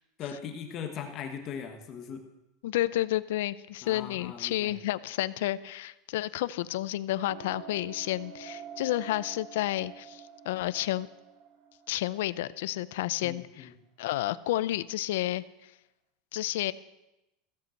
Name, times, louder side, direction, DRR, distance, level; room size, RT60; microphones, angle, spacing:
voice 1, 0.2-2.2 3.8-4.7 13.2-13.7, left 7 dB, 30° left, 6 dB, 1.2 m, -39 dB
voice 2, 2.6-11.1 11.9-13.7 14.0-15.4 16.3-16.7, left 15 dB, 70° left, 17 dB, 0.5 m, -31 dB
sound 1, 7.3-12.7, right 7 dB, 45° right, 2.4 m, -47 dB
15.5 x 8.3 x 7.7 m, 0.95 s
supercardioid pair, 180°, 0 cm